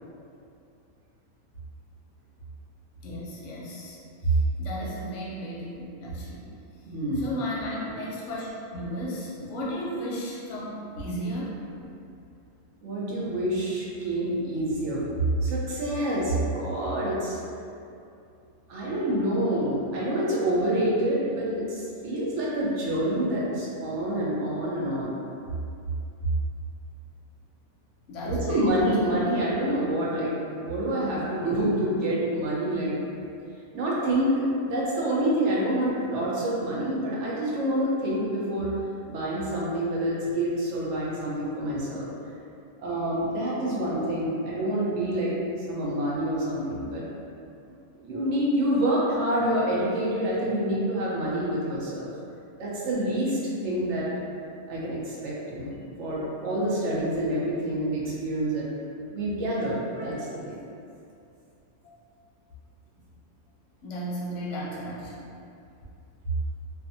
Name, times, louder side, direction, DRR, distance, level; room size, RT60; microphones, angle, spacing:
voice 1, 3.0-4.0 4.2-6.4 7.2-11.6 28.1-29.2 61.8-62.0 63.8-65.3, equal, 65° left, -6 dB, 0.9 m, -35 dB
voice 2, 6.8-7.3 12.8-15.0 15.4-17.4 18.7-25.1 28.2-33.0 33.7-38.7 39.0-42.1 42.8-45.3 45.7-47.0 48.0-52.1 52.6-54.1 54.7-58.7 59.1-60.6, right 1 dB, 60° right, -6 dB, 0.8 m, -27 dB
2.5 x 2.5 x 2.6 m, 2.6 s
omnidirectional pair, 1.6 m